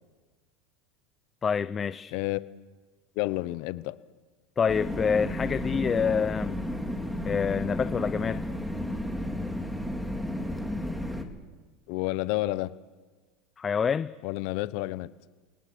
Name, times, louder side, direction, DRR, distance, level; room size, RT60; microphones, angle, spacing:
voice 1, 1.4-2.1 4.6-6.6 7.2-8.4 13.6-14.1, left 6 dB, 25° left, 15 dB, 0.6 m, -27 dB
voice 2, 2.1-2.4 3.2-3.9 11.9-12.7 14.2-15.1, left 18 dB, 65° left, 16 dB, 0.9 m, -30 dB
sound 1, 4.7-11.2, left 1 dB, ahead, 2.6 m, -32 dB
28.0 x 18.5 x 6.8 m, 1.4 s
supercardioid pair, 110°, 0 cm